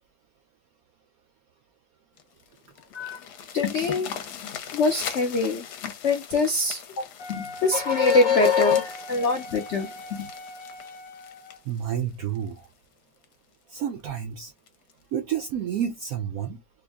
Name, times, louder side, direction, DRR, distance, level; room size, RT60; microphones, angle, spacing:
sound 1, 2.2-12.7 13.2-13.3 13.8-13.9 14.2-14.3 14.7-14.9 15.8-15.9, left 8 dB, 65° left, 1.2 m, -40 dB
voice 1, 3.5-4.1 4.4-10.2, left 4 dB, 85° left, 0.6 m, -24 dB
Wind instrument woodwind instrument, 7.2-11.7, equal, 45° left, 1.0 m, -42 dB
voice 2, 11.7-12.7 13.7-14.5 15.1-16.6, right 9 dB, 75° right, 0.8 m, -30 dB
3.5 x 2.1 x 3.3 m
omnidirectional pair, 2.0 m